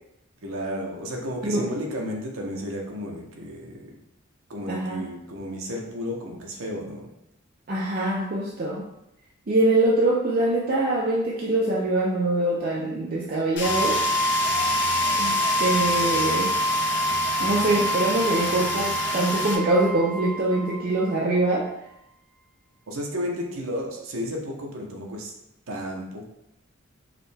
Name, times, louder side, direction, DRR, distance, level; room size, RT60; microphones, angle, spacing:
voice 1, 0.4-4.0 4.5-7.1 22.9-25.3 25.7-26.3, equal, 75° right, 0 dB, 0.7 m, -33 dB
voice 2, 4.7-5.1 7.7-8.8 9.5-14.0 15.2-16.5 17.4-21.7, right 2 dB, 40° right, -5 dB, 0.5 m, -24 dB
Fire, 13.6-19.6, left 3 dB, 50° left, 0.6 m, -29 dB
sound 1, 13.6-21.4, right 1 dB, 5° right, 1.0 m, -26 dB
4.9 x 2.2 x 3.3 m, 0.82 s
head